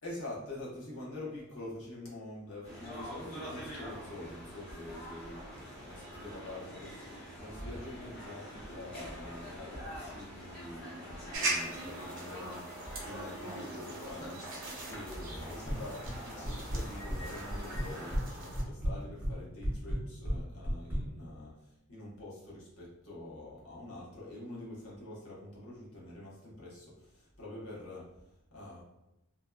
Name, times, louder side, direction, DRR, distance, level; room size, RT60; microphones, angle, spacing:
voice 1, 0.0-5.4 5.8-7.0 7.4-28.1 28.5-28.8, left 1 dB, 75° left, -6 dB, 0.9 m, -46 dB
sound 1, 2.6-18.2, equal, 45° left, 0.8 m, -45 dB
sound 2, 11.3-18.6, right 2 dB, 55° right, 0.6 m, -41 dB
sound 3, 15.6-16.2 16.4-17.2 17.5-18.3 18.5-21.0, equal, 10° right, 0.4 m, -33 dB
2.7 x 2.2 x 2.3 m, 0.90 s
head